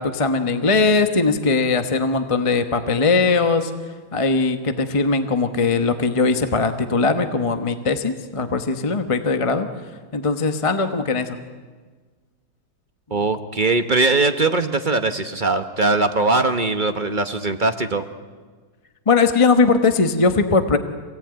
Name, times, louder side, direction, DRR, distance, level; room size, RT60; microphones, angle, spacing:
voice 1, 0.0-3.7 4.1-9.7 10.1-11.4 19.1-20.8, left 4 dB, 25° left, 8 dB, 0.8 m, -20 dB
voice 2, 13.1-18.0, right 3 dB, 40° right, 7 dB, 0.7 m, -20 dB
26.5 x 17.5 x 9.1 m, 1.5 s
omnidirectional pair, 2.3 m